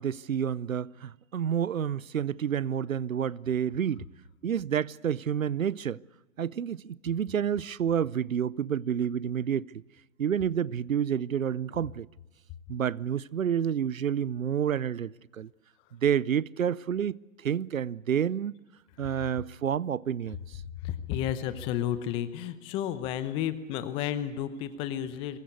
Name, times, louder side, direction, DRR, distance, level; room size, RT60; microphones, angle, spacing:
voice 1, 0.0-4.0 4.4-6.0 6.4-9.7 10.2-12.1 12.7-15.5 16.0-18.6 19.0-20.6, right 8 dB, 85° right, 0.7 m, -29 dB
voice 2, 20.8-25.4, left 10 dB, 15° left, 0.8 m, -32 dB
23.0 x 20.0 x 8.3 m
hypercardioid pair, 140°, 40 cm